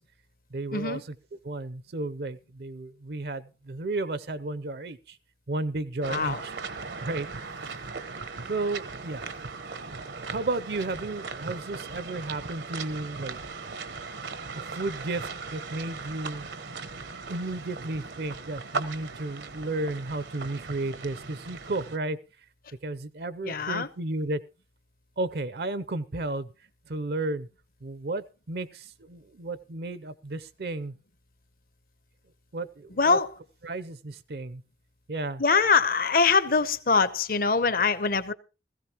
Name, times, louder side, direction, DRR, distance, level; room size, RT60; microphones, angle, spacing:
voice 1, 0.5-1.0 1.4-3.4 3.7-5.0 5.5-6.5 7.0-7.3 8.5-9.3 10.2-13.4 14.8-15.2 15.5-16.4 17.3-22.2 22.8-24.4 25.2-26.5 26.9-27.5 27.8-28.7 29.1-30.9 32.5-32.7 33.1-33.2 33.6-34.6 35.1-35.4, right 2 dB, 60° right, 0.6 m, -33 dB
sound 1, 6.0-22.0, right 4 dB, 80° right, 1.0 m, -38 dB
voice 2, 6.1-6.4 23.4-23.9 32.9-33.3 35.4-38.3, left 4 dB, 50° left, 0.8 m, -23 dB
17.0 x 15.0 x 3.0 m
head